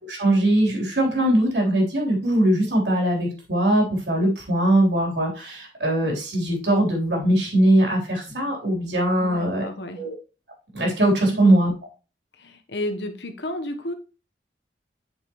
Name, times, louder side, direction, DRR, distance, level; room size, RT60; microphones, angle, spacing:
voice 1, 0.1-9.7 10.0-10.1 10.7-11.7, right 1 dB, 70° right, -1 dB, 3.7 m, -21 dB
voice 2, 9.2-10.0 11.2-11.4 12.4-13.9, left 1 dB, 70° left, 7 dB, 1.1 m, -32 dB
8.3 x 6.4 x 3.1 m, 0.33 s
head